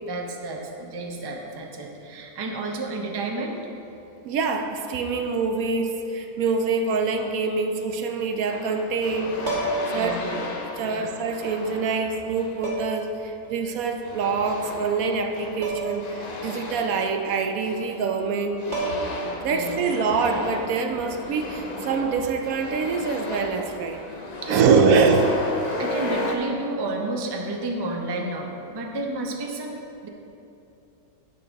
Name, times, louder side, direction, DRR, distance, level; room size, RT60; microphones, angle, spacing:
voice 1, 0.0-3.6 9.9-10.4 10.8-11.1 19.4-19.8 24.4-24.8 25.8-30.1, right 2 dB, 35° right, 1 dB, 0.4 m, -31 dB
voice 2, 4.2-9.4 9.9-10.5 10.8-18.7 19.4-24.0 24.5-25.4, right 4 dB, 75° right, 5 dB, 1.0 m, -25 dB
sound 1, 8.5-12.7 14.0-18.2 18.6-26.4, left 2 dB, 45° left, 0.5 m, -34 dB
sound 2, 9.4-10.0 11.3-11.4 12.6-13.1 15.6-16.0 16.4-16.5 18.3-18.4 18.7-19.3 21.3-21.5, right 3 dB, 55° right, 1.7 m, -29 dB
10.0 x 6.6 x 3.5 m, 2.9 s
omnidirectional pair, 1.6 m